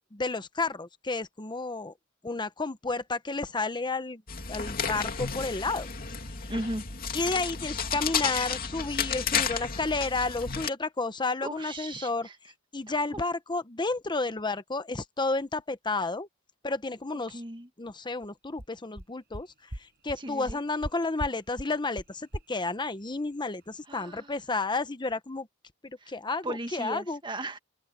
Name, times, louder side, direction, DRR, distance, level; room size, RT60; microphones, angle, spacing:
voice 1, 0.1-1.9 2.2-4.2 4.5-5.9 7.1-12.3 12.7-16.3 16.6-17.4 17.8-19.5 19.8-25.5 25.8-27.2, left 3 dB, 20° left, 0.9 m, -31 dB
sound 1, 4.3-10.7, left 6 dB, 45° left, 2.7 m, -32 dB
voice 2, 6.5-6.8 11.4-12.3 12.9-13.0 17.3-17.7 20.2-20.6 23.9-24.3 26.0-26.1 26.4-27.6, right 1 dB, 25° right, 1.5 m, -36 dB
sound 2, 18.2-18.3 18.6-18.7 19.0-19.1 19.3-19.4 19.7-19.8 20.1-20.2 20.5-20.9 21.2-21.3 21.6-21.7 22.0-22.1 22.3-22.4, equal, 50° right, 5.4 m, -36 dB
open air
head